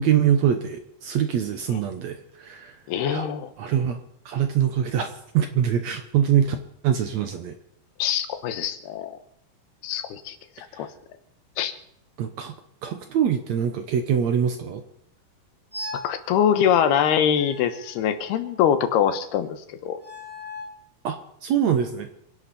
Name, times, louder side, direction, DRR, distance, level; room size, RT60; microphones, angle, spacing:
voice 1, 0.0-2.7 3.1-3.3 3.6-4.0 4.2-6.6 6.8-7.5 10.7-10.9 12.2-12.5 12.8-14.8 21.0-22.1, right 9 dB, 75° right, 7 dB, 1.6 m, -24 dB
voice 2, 2.9-3.5 8.0-9.2 9.8-10.9 11.6-11.7 15.9-20.0, left 9 dB, 75° left, 10 dB, 3.1 m, -23 dB
sound 1, 15.7-16.2 17.4-18.6 20.0-20.8, left 2 dB, 20° right, 0.4 m, -38 dB
26.5 x 11.5 x 4.3 m, 0.72 s
omnidirectional pair, 4.6 m